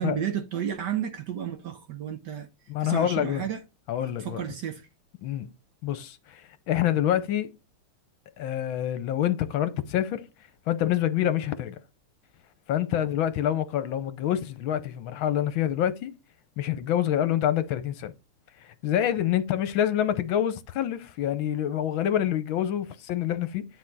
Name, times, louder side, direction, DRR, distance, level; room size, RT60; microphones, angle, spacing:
voice 1, 0.0-2.5 2.8-3.6 4.2-4.9, right 9 dB, 65° right, 1.2 m, -32 dB
voice 2, 2.7-3.5 3.9-4.4 5.2-5.5 5.8-7.5 8.4-10.3 10.7-11.8 12.7-16.1 16.6-18.1 18.8-23.7, left 11 dB, 70° left, 1.4 m, -26 dB
9.7 x 4.5 x 4.0 m
omnidirectional pair, 2.4 m